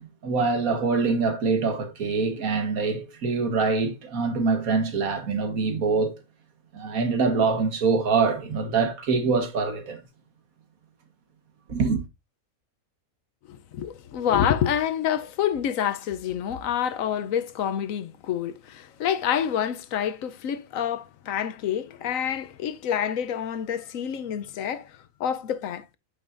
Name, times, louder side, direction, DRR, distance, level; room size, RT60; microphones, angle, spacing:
voice 1, 0.0-6.2 6.7-10.0 11.7-12.0, right 4 dB, 70° right, 1.8 m, -24 dB
voice 2, 13.5-25.9, left 9 dB, 70° left, 1.1 m, -27 dB
8.9 x 6.1 x 2.5 m
omnidirectional pair, 1.5 m